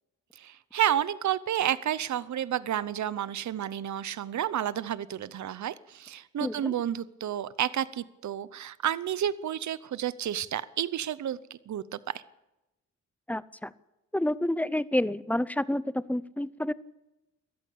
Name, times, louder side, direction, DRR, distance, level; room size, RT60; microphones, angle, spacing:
voice 1, 0.4-12.2, right 10 dB, 70° right, 17 dB, 0.8 m, -31 dB
voice 2, 6.4-6.7 13.3-13.7 14.1-16.7, left 1 dB, 5° left, 17 dB, 0.7 m, -29 dB
22.0 x 14.0 x 8.5 m, 0.97 s
wide cardioid pair, 120°, 30 cm